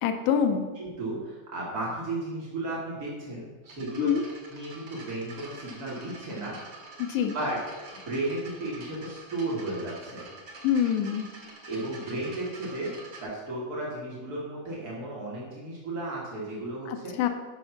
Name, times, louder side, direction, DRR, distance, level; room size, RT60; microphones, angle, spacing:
voice 1, 0.0-0.7 4.0-4.2 7.0-7.4 10.6-11.3 16.9-17.3, left 8 dB, 80° left, 6 dB, 2.6 m, -25 dB
voice 2, 0.8-4.2 4.5-6.8 7.3-7.6 7.9-10.2 11.7-12.9 13.2-17.1, right 2 dB, 85° right, -5 dB, 0.8 m, -34 dB
sound 1, 3.6-13.2, right 3 dB, 70° right, 1.2 m, -47 dB
9.9 x 6.0 x 5.8 m, 1.3 s
omnidirectional pair, 5.3 m